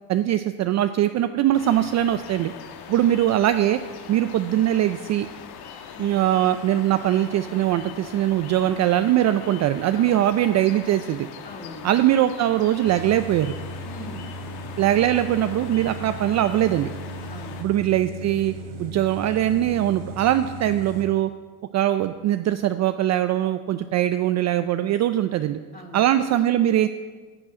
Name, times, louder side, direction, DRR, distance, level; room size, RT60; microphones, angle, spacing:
voice 1, 0.1-2.5 2.9-3.8 4.1-5.3 6.0-11.3 11.8-13.5 14.8-16.9 17.6-18.5 18.8-21.3 21.7-25.6 25.9-26.9, right 12 dB, 40° right, 10 dB, 0.4 m, -21 dB
sound 1, 1.5-17.6, left 7 dB, 55° left, 1.3 m, -41 dB
voice 2, 11.4-11.9 13.8-14.2 17.3-17.6 25.7-26.0, left 2 dB, 20° left, 1 dB, 2.2 m, -41 dB
sound 2, 12.8-21.0, right 1 dB, 70° right, 4.5 m, -37 dB
11.0 x 6.2 x 8.9 m, 1.4 s
cardioid pair, 120°, 44 cm